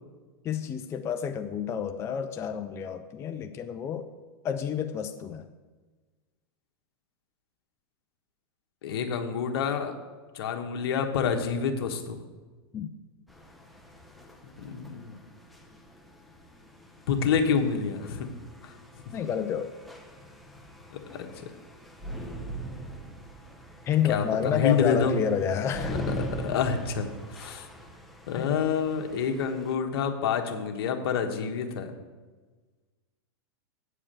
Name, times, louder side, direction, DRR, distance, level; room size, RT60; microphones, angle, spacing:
voice 1, 0.4-4.1 4.4-5.5 12.7-12.9 19.1-19.7 23.8-26.0 28.3-28.5, left 8 dB, 20° left, 7 dB, 0.4 m, -29 dB
voice 2, 8.8-9.9 10.3-12.2 14.6-15.2 17.1-18.3 18.6-18.7 21.1-21.5 24.0-25.2 26.1-27.7 28.3-31.9, left 6 dB, 70° left, 4 dB, 1.3 m, -28 dB
sound 1, 13.3-29.7, equal, ahead, 0.9 m, -41 dB
8.7 x 4.9 x 7.5 m, 1.3 s
hypercardioid pair, 135°, 13 cm